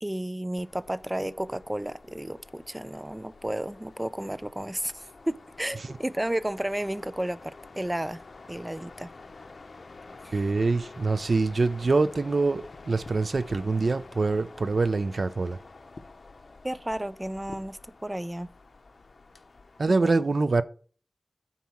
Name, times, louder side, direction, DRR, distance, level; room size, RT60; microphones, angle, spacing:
voice 1, 0.0-8.2 8.5-9.1 10.2-10.4 16.6-18.5 19.9-20.2, right 1 dB, 15° right, 0.5 m, -32 dB
sound 1, 0.6-20.0, left 3 dB, 70° left, 0.9 m, -49 dB
voice 2, 10.3-15.6 19.8-20.6, right 3 dB, 65° right, 0.5 m, -25 dB
9.2 x 4.2 x 6.0 m
wide cardioid pair, 70°, 0 cm